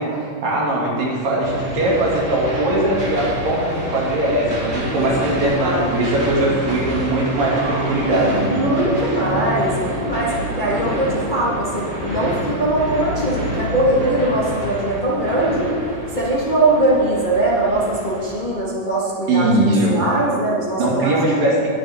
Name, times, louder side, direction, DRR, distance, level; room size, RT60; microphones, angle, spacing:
voice 1, 0.0-8.6 9.2-9.4 19.3-20.0 20.8-21.7, right 1 dB, 75° right, -5 dB, 4.2 m, -20 dB
sound 1, 1.4-18.4, equal, 25° right, 2.3 m, -27 dB
voice 2, 5.6-6.3 8.5-15.7 16.1-21.1, right 1 dB, 55° left, -6 dB, 0.5 m, -21 dB
21.0 x 7.4 x 3.7 m, 2.1 s
omnidirectional pair, 4.0 m